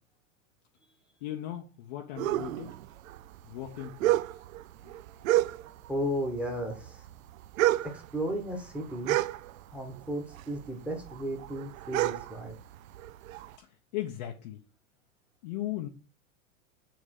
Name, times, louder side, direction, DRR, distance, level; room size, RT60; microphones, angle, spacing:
voice 1, 1.2-2.8 3.4-4.2 4.8-4.9 13.6-14.6 15.4-15.9, left 13 dB, 30° left, 0.6 m, -37 dB
sound 1, 2.2-6.0 6.2-10.0 10.3-13.5, right 15 dB, 65° right, 0.5 m, -30 dB
voice 2, 5.9-7.0 7.8-9.2 9.7-12.6, equal, 5° right, 1.1 m, -34 dB
7.4 x 3.3 x 6.3 m
supercardioid pair, 170°, 44 cm